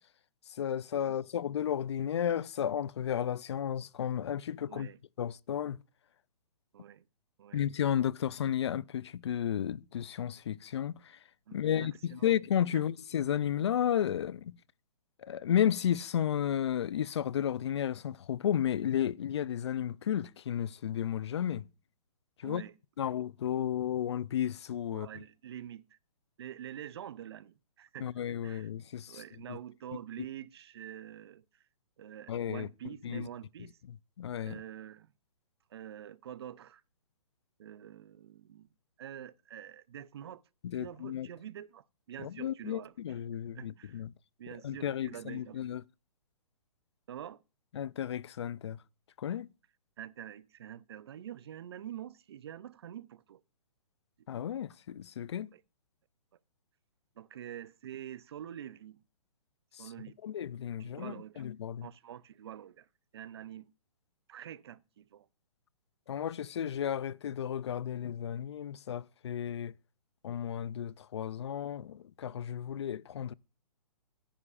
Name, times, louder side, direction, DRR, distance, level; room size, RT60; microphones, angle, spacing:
voice 1, 0.5-4.9 5.2-5.8 7.5-11.2 11.5-14.5 15.2-21.7 22.4-22.6 23.0-25.1 28.0-29.2 29.5-29.6 32.3-32.7 33.0-33.3 33.9-34.6 40.6-41.3 42.2-44.1 44.6-45.8 47.7-48.8 49.2-49.5 54.3-55.5 59.8-59.9 60.2-61.9 66.1-69.7 70.2-73.3, left 9 dB, 45° left, 0.4 m, -33 dB
voice 2, 4.7-5.0 6.7-7.0 7.4-7.6 11.5-12.3 12.7-12.8 22.4-22.7 23.0-23.1 24.9-26.0 26.4-28.7 29.1-31.6 32.0-33.8 34.4-35.1 35.7-36.8 37.6-38.7 39.0-40.4 40.7-42.9 43.5-44.0 44.4-45.6 47.1-47.4 50.0-53.4 55.5-55.6 57.2-59.0 59.8-60.2 60.8-61.5 61.8-62.9 63.1-63.7 64.3-65.3, right 10 dB, 40° right, 0.5 m, -46 dB
14.5 x 10.0 x 2.5 m
hypercardioid pair, 165°, 20 cm